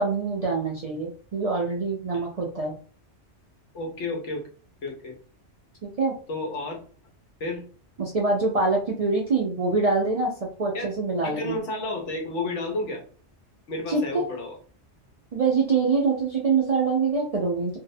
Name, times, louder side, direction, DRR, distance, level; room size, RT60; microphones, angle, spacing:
voice 1, 0.0-2.8 5.8-6.1 8.0-10.3 10.6-11.6 13.9-14.2 15.3-17.8, right 4 dB, 60° right, -2 dB, 0.4 m, -24 dB
voice 2, 3.7-4.5 4.8-5.2 6.3-6.8 7.4-7.6 10.7-10.9 11.2-13.0 13.7-14.6, left 2 dB, 90° left, 1 dB, 1.1 m, -31 dB
2.6 x 2.0 x 2.6 m, 0.41 s
omnidirectional pair, 1.2 m